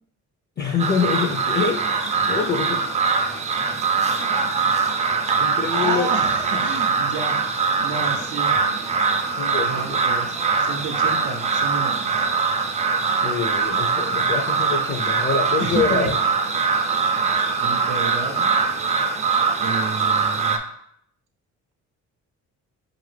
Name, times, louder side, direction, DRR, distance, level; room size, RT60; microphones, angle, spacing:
voice 1, 0.6-2.8 5.4-6.1 9.3-10.0 13.2-16.2, left 5 dB, 35° left, 4 dB, 0.5 m, -25 dB
sound 1, 0.8-20.6, right 5 dB, 25° right, 0.4 m, -22 dB
voice 2, 5.7-7.4 7.8-8.5 9.6-12.3 15.6-16.1 17.1-17.3 17.6-18.5 19.6-20.6, right 4 dB, 90° right, 1 dB, 0.6 m, -30 dB
4.7 x 2.5 x 3.2 m, 0.71 s
cardioid pair, 90°, 30 cm